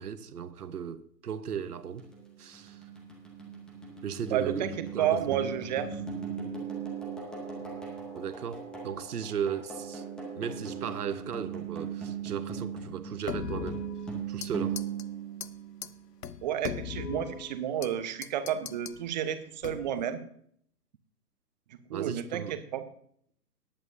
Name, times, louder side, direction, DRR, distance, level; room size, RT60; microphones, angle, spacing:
voice 1, 0.0-2.1 2.4-2.8 4.0-5.5 8.1-10.0 10.4-13.8 14.3-14.8 21.9-22.5, right 7 dB, 70° right, 1.0 m, -36 dB
sound 1, 2.0-16.2, right 6 dB, ahead, 0.8 m, -39 dB
voice 2, 4.3-4.7 5.0-5.9 16.4-20.2 21.9-22.8, right 10 dB, 30° right, 0.9 m, -31 dB
sound 2, 13.3-14.5 14.8-15.0 15.4-15.5 15.8-15.9 16.2-17.9 18.2-19.0 19.6-20.0, left 8 dB, 75° left, 0.8 m, -38 dB
18.5 x 9.0 x 2.7 m
figure-of-eight pair, 130°, 48 cm